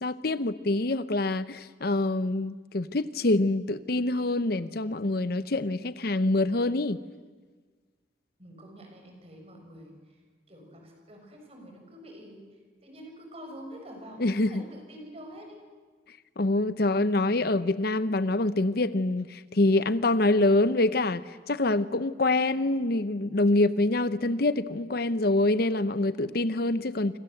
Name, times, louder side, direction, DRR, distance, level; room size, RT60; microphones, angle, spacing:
voice 1, 0.0-7.0 14.2-14.6 16.4-27.2, left 2 dB, 55° left, 14 dB, 0.8 m, -25 dB
voice 2, 8.4-10.2 10.5-15.6, equal, 30° right, 3 dB, 6.6 m, -46 dB
29.0 x 25.5 x 7.9 m, 1.4 s
head